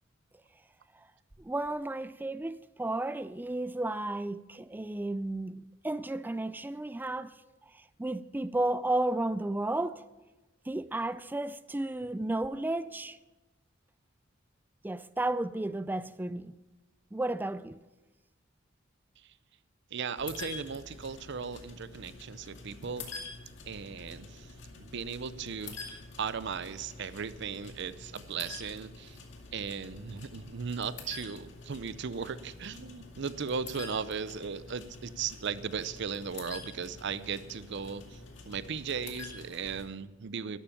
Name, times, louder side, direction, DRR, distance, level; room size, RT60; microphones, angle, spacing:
voice 1, 1.4-7.4 7.7-10.0 10.7-13.2 14.8-16.5 17.1-17.8, right 2 dB, 10° right, 0.3 m, -33 dB
voice 2, 19.9-23.0 23.7-24.5 24.8-29.2 29.5-38.2 38.5-40.6, right 6 dB, 60° right, 0.6 m, -37 dB
sound 1, 20.2-39.9, left 3 dB, 60° left, 2.2 m, -47 dB
12.5 x 12.0 x 5.7 m
head